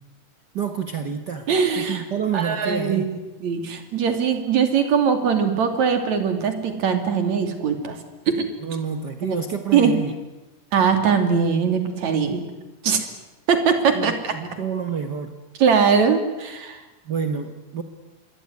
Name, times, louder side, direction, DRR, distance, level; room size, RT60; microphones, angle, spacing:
voice 1, 0.5-1.5 1.8-3.1 8.6-10.2 13.9-15.3 17.1-17.8, right 6 dB, 70° right, 8 dB, 1.0 m, -28 dB
voice 2, 1.5-2.0 2.3-3.1 3.4-8.0 8.3-8.5 9.2-9.4 9.7-9.9 10.7-12.4 12.8-13.1 13.5-14.3 15.6-16.8, right 6 dB, 55° right, 7 dB, 4.1 m, -21 dB
27.0 x 22.5 x 9.7 m, 1.1 s
omnidirectional pair, 4.1 m